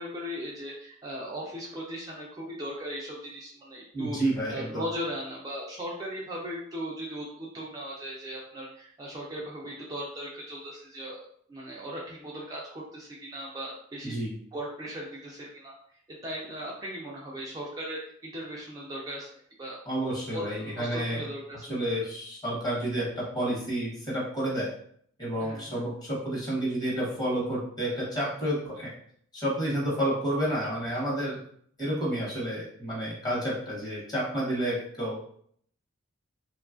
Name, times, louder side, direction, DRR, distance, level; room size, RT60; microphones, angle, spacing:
voice 1, 0.0-4.2 4.5-14.1 14.5-15.7 16.1-19.3 19.6-19.8 20.3-21.8 25.4-25.8, equal, 20° right, -5 dB, 0.4 m, -38 dB
voice 2, 3.9-4.8 14.0-14.3 19.9-21.2 21.7-24.7 25.2-28.9 29.3-31.4 31.8-35.2, right 1 dB, 20° left, -5 dB, 1.0 m, -30 dB
3.0 x 2.3 x 2.4 m, 0.63 s
head